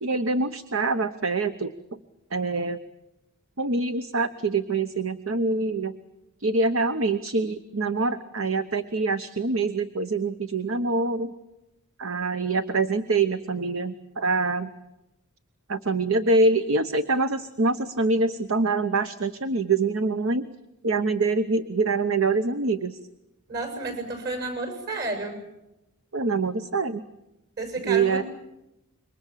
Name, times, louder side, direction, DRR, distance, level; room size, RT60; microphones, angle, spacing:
voice 1, 0.0-2.0 2.3-2.8 3.6-5.9 6.4-11.3 12.0-14.7 15.7-20.4 20.8-23.0 26.1-27.0 27.8-28.2, right 3 dB, 70° right, 11 dB, 1.0 m, -25 dB
voice 2, 23.5-25.4 27.6-28.2, right 2 dB, 50° right, 7 dB, 7.5 m, -31 dB
27.0 x 23.5 x 7.5 m, 0.93 s
head